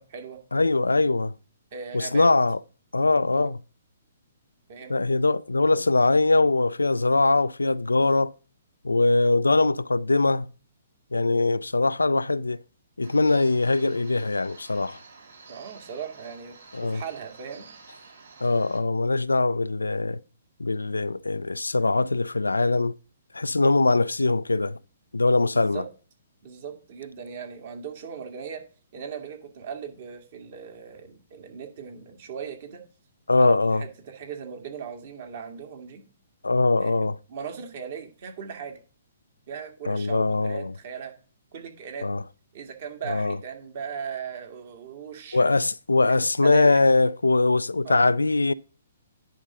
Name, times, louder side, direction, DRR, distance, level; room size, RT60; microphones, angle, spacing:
voice 1, 0.0-0.4 1.7-2.3 3.3-3.5 4.7-5.0 15.5-16.6 16.8-17.7 25.5-25.9 26.4-28.6 28.9-32.8 33.4-36.0 36.8-38.8 39.5-41.1 41.5-42.1 42.5-45.5 46.4-46.8 47.8-48.1, right 7 dB, 50° right, 2.1 m, -38 dB
voice 2, 0.5-1.3 1.9-2.6 2.9-3.6 4.9-8.3 8.8-10.5 11.1-12.6 13.0-15.0 16.7-17.0 18.4-20.2 20.6-22.9 23.3-24.8 25.1-25.8 33.3-33.8 36.4-37.2 39.8-40.7 42.0-42.2 43.1-43.4 45.3-48.5, left 3 dB, 85° left, 0.3 m, -22 dB
sound 1, 13.0-18.8, right 4 dB, 70° right, 5.2 m, -50 dB
10.0 x 3.7 x 5.6 m
figure-of-eight pair, 125°, 0 cm